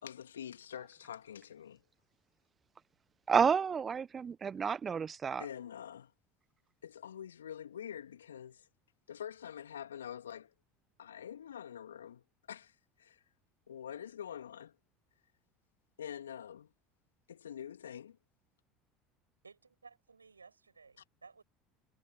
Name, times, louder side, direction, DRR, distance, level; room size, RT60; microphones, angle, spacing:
voice 1, 0.0-1.8 5.4-6.1 6.8-8.7 9.1-10.5 11.0-13.2 13.7-14.7 16.0-16.7 17.3-18.2, left 9 dB, 75° left, 2.9 m, -46 dB
voice 2, 3.3-5.4, right 6 dB, 30° right, 1.1 m, -30 dB
voice 3, 19.4-21.4, right 4 dB, 85° right, 7.9 m, -57 dB
figure-of-eight pair, 65°, 0 cm